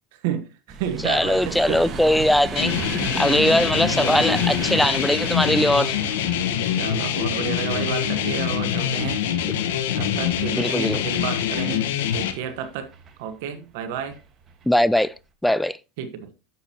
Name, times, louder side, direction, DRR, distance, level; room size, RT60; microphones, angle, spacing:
voice 1, 0.2-1.8 3.3-3.7 6.7-9.2 9.9-12.9 13.2-14.2 16.0-16.3, right 8 dB, 65° right, 1.1 m, -31 dB
sound 1, 0.7-11.8 12.4-13.1 14.0-14.2 14.5-14.6, right 5 dB, 35° right, 1.4 m, -34 dB
voice 2, 1.0-2.8 3.2-5.9 10.6-11.0 14.7-15.1 15.4-15.8, left 1 dB, 5° left, 0.4 m, -20 dB
sound 2, 2.6-12.3, left 9 dB, 75° left, 1.1 m, -25 dB
9.6 x 7.1 x 2.9 m
supercardioid pair, 115°, 0 cm